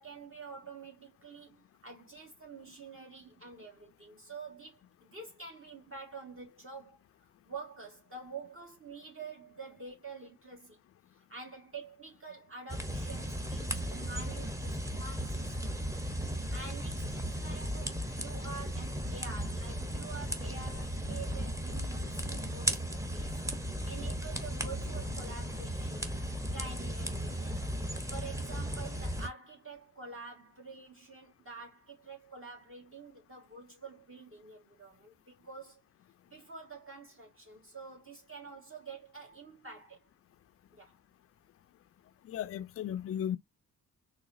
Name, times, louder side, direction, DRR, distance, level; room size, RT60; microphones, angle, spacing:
voice 1, 0.0-4.8 5.1-7.0 7.5-10.8 11.1-15.8 16.5-22.8 23.1-23.4 23.8-26.1 26.5-27.7 28.1-35.8 36.3-40.0 40.7-41.0, right 4 dB, 40° right, 1.6 m, -47 dB
sound 1, 12.7-29.3, equal, 10° right, 0.9 m, -36 dB
voice 2, 42.2-43.4, left 10 dB, 45° left, 0.4 m, -35 dB
4.0 x 2.8 x 2.5 m
supercardioid pair, 55°, 34 cm